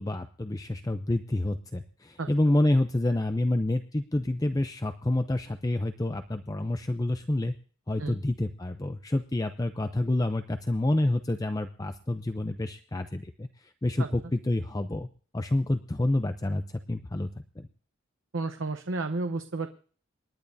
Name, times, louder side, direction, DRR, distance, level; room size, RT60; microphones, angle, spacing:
voice 1, 0.0-7.5 7.9-15.1 15.3-17.3 17.6-17.7, left 1 dB, 20° left, 8 dB, 0.5 m, -28 dB
voice 2, 18.3-19.7, right 3 dB, 90° right, 7 dB, 0.8 m, -31 dB
27.5 x 10.5 x 2.7 m, 0.44 s
head